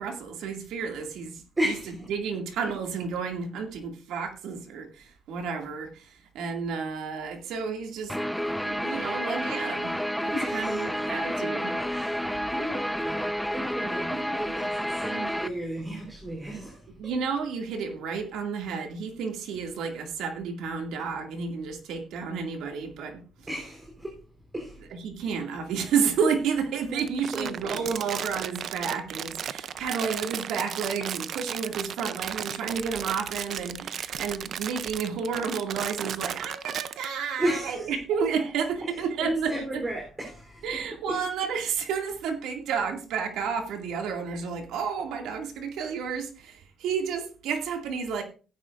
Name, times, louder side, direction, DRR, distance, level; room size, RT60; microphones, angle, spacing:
voice 1, 0.0-1.4 2.1-8.2 8.6-10.0 10.2-11.7 17.0-23.2 24.9-39.8 40.6-48.2, right 6 dB, 90° right, 2.2 m, -31 dB
voice 2, 1.6-2.1 10.3-11.1 11.7-17.0 23.5-24.3 24.5-24.9 26.8-27.0 27.3-28.0 37.4-37.9 38.8-40.8 41.1-41.3, right 1 dB, 20° right, 3.5 m, -34 dB
Guitar, 8.1-15.5, equal, ahead, 0.8 m, -30 dB
Crumpling crinkling, 27.0-37.1, right 8 dB, 60° right, 0.6 m, -35 dB
15.5 x 9.7 x 2.5 m
cardioid pair, 105°, 0 cm